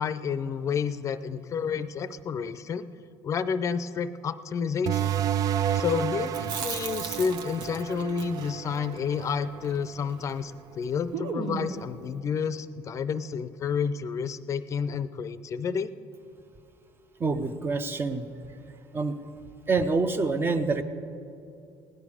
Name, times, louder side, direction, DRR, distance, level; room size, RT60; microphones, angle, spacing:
voice 1, 0.0-2.9 3.2-5.1 5.7-15.9, left 6 dB, 40° left, 14 dB, 0.5 m, -30 dB
sound 1, 4.9-10.1, right 9 dB, 50° right, 0.4 m, -31 dB
Chewing mastication, 6.3-10.4 10.7-10.8 11.1-11.9, right 5 dB, 70° right, 1.1 m, -37 dB
voice 2, 17.2-18.3 18.9-19.2 19.7-20.8, right 3 dB, 25° right, 9 dB, 0.7 m, -26 dB
17.0 x 10.5 x 4.9 m, 2.7 s
cardioid pair, 105°, 8 cm